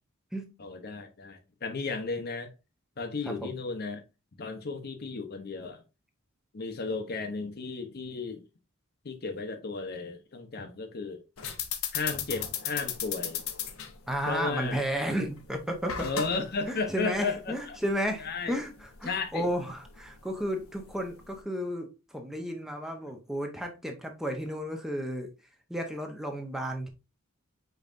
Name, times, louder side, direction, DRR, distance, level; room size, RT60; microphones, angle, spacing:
voice 1, 0.6-2.5 3.0-4.0 4.4-5.8 6.5-8.4 9.0-11.2 11.9-13.4 14.3-14.8 16.0-17.8 18.2-18.5 19.0-19.5, left 4 dB, 50° left, 0.7 m, -34 dB
sound 1, 11.4-21.4, left 9 dB, 80° left, 0.7 m, -38 dB
voice 2, 14.1-16.1 16.7-25.3 25.7-26.9, equal, ahead, 0.7 m, -33 dB
5.3 x 3.9 x 2.4 m
head